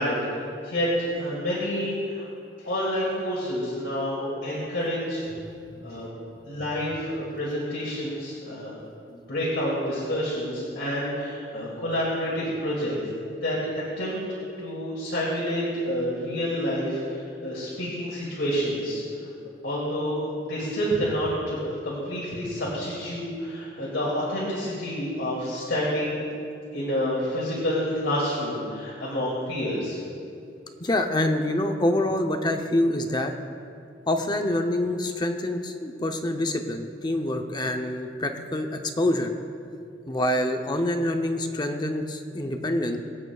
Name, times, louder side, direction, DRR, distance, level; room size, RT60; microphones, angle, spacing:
voice 1, 0.0-2.3 2.6-5.3 5.8-6.1 6.4-8.7 9.1-13.0 13.4-19.0 19.6-26.2 26.7-30.0, equal, 85° left, -6 dB, 2.5 m, -28 dB
voice 2, 30.8-33.3 34.1-39.3 40.1-43.0, left 1 dB, 25° left, 5 dB, 0.7 m, -26 dB
23.5 x 8.8 x 2.4 m, 2.5 s
head